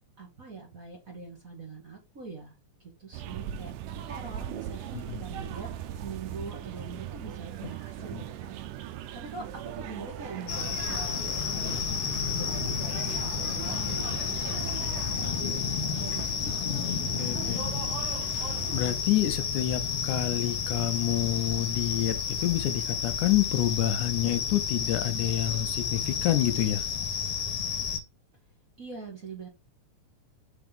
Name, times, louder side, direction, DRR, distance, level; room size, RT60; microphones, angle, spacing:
voice 1, 0.2-3.7 4.0-5.7 5.9-8.6 9.1-11.8 12.4-17.9 28.8-29.5, right 3 dB, 30° right, 1.9 m, -43 dB
sound 1, 3.1-18.9, right 11 dB, 90° right, 2.3 m, -39 dB
sound 2, 10.5-28.0, left 7 dB, 60° left, 2.1 m, -31 dB
voice 2, 17.2-17.6 18.7-26.9, left 13 dB, 80° left, 2.2 m, -28 dB
6.0 x 4.1 x 5.2 m
omnidirectional pair, 3.6 m